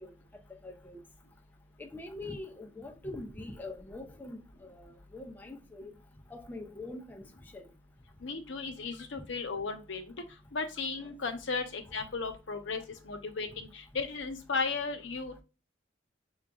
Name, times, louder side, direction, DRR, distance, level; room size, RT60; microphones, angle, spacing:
voice 1, 0.5-1.0 1.8-5.9 6.3-7.7, left 2 dB, 10° left, 0.3 m, -44 dB
voice 2, 8.2-10.1 10.5-15.4, left 4 dB, 85° left, 0.7 m, -35 dB
6.0 x 2.3 x 2.3 m
head